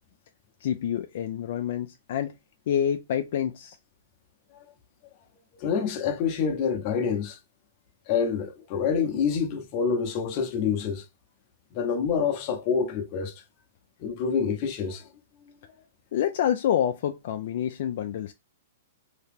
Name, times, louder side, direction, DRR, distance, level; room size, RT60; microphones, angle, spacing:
voice 1, 0.6-2.3 2.7-3.8 16.1-18.3, left 9 dB, 55° left, 0.3 m, -27 dB
voice 2, 5.6-7.4 8.1-11.0 11.7-13.4 14.0-15.1 15.4-15.6, left 6 dB, 35° left, 0.7 m, -27 dB
2.8 x 2.8 x 3.5 m
hypercardioid pair, 155°, 0 cm